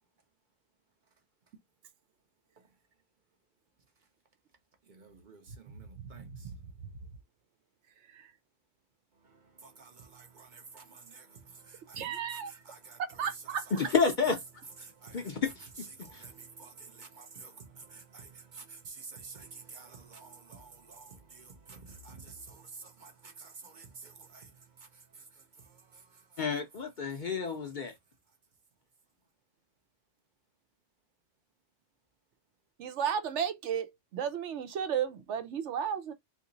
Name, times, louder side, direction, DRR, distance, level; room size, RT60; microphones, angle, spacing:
voice 1, 4.9-6.3 9.6-12.0 12.7-13.0 14.8-15.3 16.0-24.5, right 4 dB, 50° right, 0.7 m, -50 dB
voice 2, 5.7-6.7 8.1-8.3 11.9-12.6 13.2-13.9 32.8-36.1, right 8 dB, 75° right, 0.9 m, -34 dB
voice 3, 13.8-14.4 15.1-15.7 16.1-16.2 26.4-27.9, left 5 dB, 50° left, 0.6 m, -30 dB
2.9 x 2.6 x 3.8 m
omnidirectional pair, 1.3 m